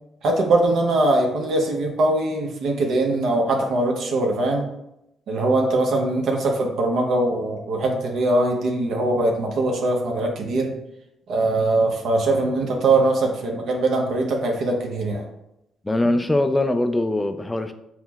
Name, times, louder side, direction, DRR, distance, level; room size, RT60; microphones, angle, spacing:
voice 1, 0.2-4.7 5.3-10.7 11.3-15.2, right 2 dB, 70° right, 1 dB, 0.6 m, -21 dB
voice 2, 15.8-17.7, left 1 dB, 15° left, 9 dB, 0.3 m, -22 dB
5.7 x 2.0 x 2.3 m, 0.83 s
cardioid pair, 90°, 0 cm